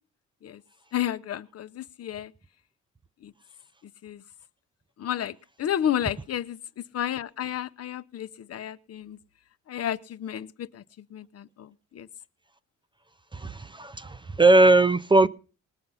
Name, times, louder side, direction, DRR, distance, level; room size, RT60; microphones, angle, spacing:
voice 1, 0.9-2.3 3.2-3.3 4.0-4.2 5.0-5.3 5.6-6.6 6.9-9.2 9.7-10.8 11.1-12.1, left 10 dB, 55° left, 0.7 m, -31 dB
voice 2, 13.3-15.3, right 2 dB, 15° right, 0.5 m, -19 dB
20.0 x 6.7 x 5.6 m
cardioid pair, 90°, 30 cm